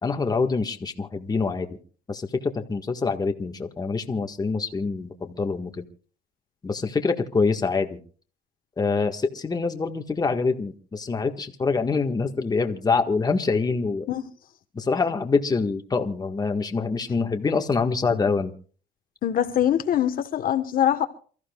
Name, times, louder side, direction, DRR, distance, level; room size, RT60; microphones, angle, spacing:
voice 1, 0.0-1.8 2.1-5.8 6.6-8.0 8.8-14.1 14.7-18.5, left 4 dB, 25° left, 1.6 m, -25 dB
voice 2, 19.2-21.1, left 10 dB, 60° left, 1.3 m, -23 dB
28.5 x 14.0 x 2.4 m
cardioid pair, 110°, 17 cm